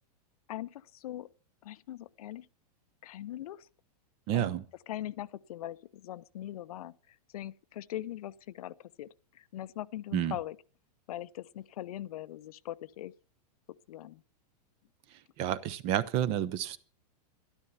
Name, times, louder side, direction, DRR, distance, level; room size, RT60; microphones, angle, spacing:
voice 1, 0.5-1.3 1.6-2.5 3.0-3.7 4.3-4.5 4.9-10.6 11.1-13.1 13.9-14.2, left 13 dB, 65° left, 0.7 m, -41 dB
voice 2, 4.3-4.6 10.1-10.3 15.4-16.8, right 11 dB, 30° right, 0.8 m, -30 dB
12.5 x 12.5 x 5.6 m
supercardioid pair, 160°, 20 cm